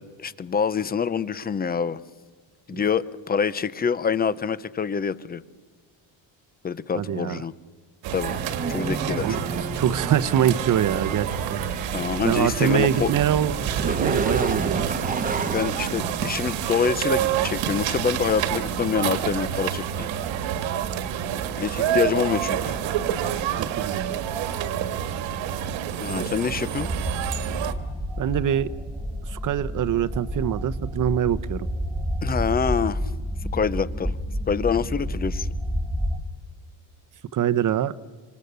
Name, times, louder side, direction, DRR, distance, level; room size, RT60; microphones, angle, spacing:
voice 1, 0.0-2.0 2.7-5.4 6.6-7.5 8.1-8.3 8.7-9.5 11.9-13.1 15.4-20.1 21.6-22.7 26.0-26.9 32.2-33.1 33.5-34.2 34.5-35.5, left 6 dB, 20° left, 17 dB, 0.7 m, -26 dB
voice 2, 6.9-7.4 9.2-11.6 12.2-13.5 13.8-14.9 23.8-24.0 28.2-28.7 29.2-31.7 37.3-37.9, right 10 dB, 45° right, 14 dB, 0.9 m, -24 dB
sound 1, 8.0-27.7, right 9 dB, 75° right, 1.8 m, -28 dB
sound 2, 8.2-16.9, right 3 dB, 20° right, 1.2 m, -32 dB
sound 3, 26.8-36.2, equal, ahead, 2.1 m, -30 dB
26.0 x 26.0 x 6.9 m, 1.5 s
cardioid pair, 140°, 46 cm